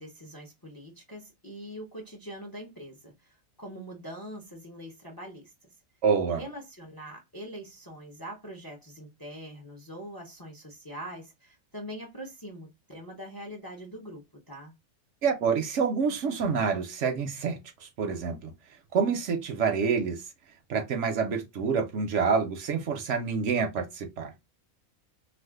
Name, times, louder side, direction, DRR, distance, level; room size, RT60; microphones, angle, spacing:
voice 1, 0.0-5.7 6.4-14.7, equal, 25° left, 0.5 m, -43 dB
voice 2, 6.0-6.4 15.2-17.6 18.0-18.5 18.9-20.2 20.7-24.3, right 5 dB, 70° right, 0.9 m, -27 dB
2.5 x 2.4 x 3.5 m
omnidirectional pair, 1.4 m